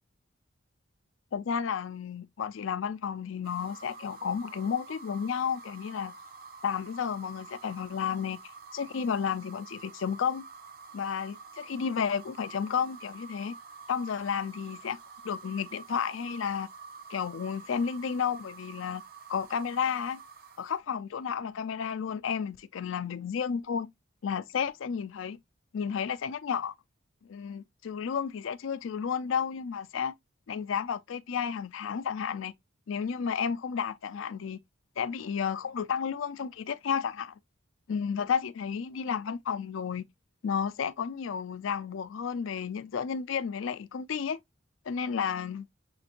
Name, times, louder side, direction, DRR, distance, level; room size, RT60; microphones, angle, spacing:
voice 1, 1.3-6.1 6.6-8.4 8.7-10.4 10.9-13.5 13.9-15.0 15.2-16.7 17.1-19.0 19.3-20.2 20.6-23.9 24.2-25.4 25.7-26.7 27.2-30.1 30.5-32.5 32.9-34.6 35.0-37.4 37.9-40.0 40.4-44.4 44.9-45.7, left 7 dB, 75° left, 0.4 m, -32 dB
sound 1, 3.4-20.8, right 4 dB, 45° right, 0.8 m, -48 dB
7.1 x 2.9 x 2.5 m
head